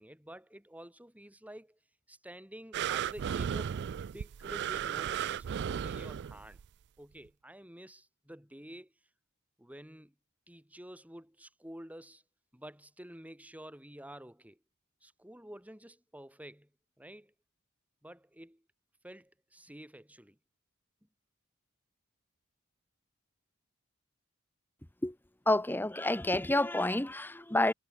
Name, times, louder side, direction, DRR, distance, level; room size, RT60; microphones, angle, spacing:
voice 1, 0.0-1.8 2.1-6.6 7.0-8.9 9.6-10.1 10.5-12.2 12.5-14.6 15.0-16.7 17.0-17.3 18.0-18.6 19.0-20.4, right 1 dB, 5° right, 4.5 m, -50 dB
sound 1, 2.7-6.7 7.3-7.4, right 9 dB, 55° right, 0.3 m, -35 dB
voice 2, 25.5-27.7, left 1 dB, 10° left, 1.0 m, -29 dB
head